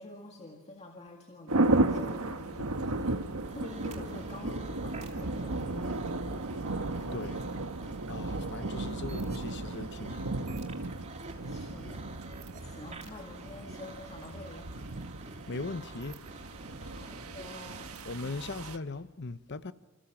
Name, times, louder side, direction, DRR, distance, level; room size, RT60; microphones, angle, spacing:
voice 1, 0.0-3.3 3.5-6.2 11.4-12.3 12.6-14.7 16.8-18.0 19.5-19.7, left 2 dB, 30° left, 2.0 m, -47 dB
sound 1, 1.5-18.8, right 2 dB, 85° right, 1.4 m, -34 dB
sound 2, 3.4-18.2, right 2 dB, 30° right, 2.8 m, -49 dB
voice 2, 7.1-7.4 8.1-10.2 15.5-16.2 18.0-19.7, left 3 dB, 55° left, 0.8 m, -39 dB
27.5 x 27.0 x 7.3 m
head